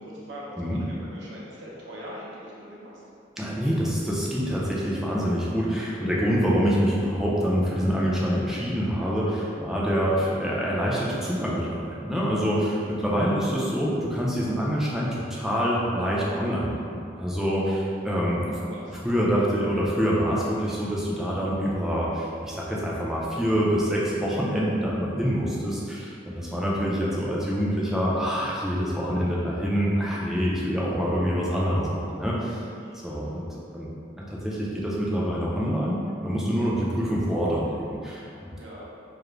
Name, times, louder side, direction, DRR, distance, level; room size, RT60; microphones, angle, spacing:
voice 1, 0.0-3.0 12.8-13.1 18.5-19.0 32.8-33.2 38.5-38.9, equal, 75° right, -6 dB, 0.5 m, -42 dB
voice 2, 3.4-18.5 18.9-32.6 33.0-33.9 34.3-38.5, equal, 5° right, -6 dB, 0.4 m, -26 dB
2.4 x 2.0 x 3.1 m, 2.4 s
head